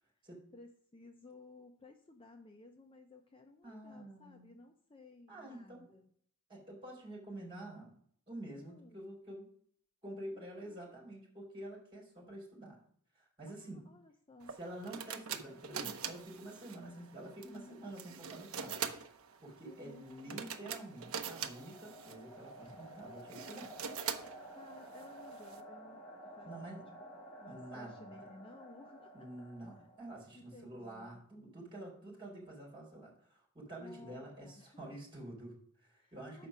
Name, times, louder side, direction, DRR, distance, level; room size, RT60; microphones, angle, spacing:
voice 1, 0.5-6.1 8.5-9.2 10.3-11.0 13.5-14.6 17.4-17.9 19.7-20.5 22.6-22.8 24.5-26.7 27.0-27.1 27.4-29.1 29.8-29.9 30.3-31.2 33.8-34.8 36.0-36.5, left 2 dB, 25° left, 4 dB, 0.5 m, -57 dB
voice 2, 3.6-4.5 5.3-6.0 6.5-8.0 8.3-9.5 10.0-12.8 13.1-13.9 14.6-18.9 19.4-23.8 26.4-26.9 27.5-28.2 29.1-36.5, right 1 dB, 25° right, -3 dB, 3.6 m, -48 dB
sound 1, 14.4-25.6, right 7 dB, 70° right, 0.7 m, -44 dB
sound 2, 19.6-30.5, right 1 dB, 10° left, 2.4 m, -53 dB
6.7 x 5.3 x 6.1 m, 0.62 s
head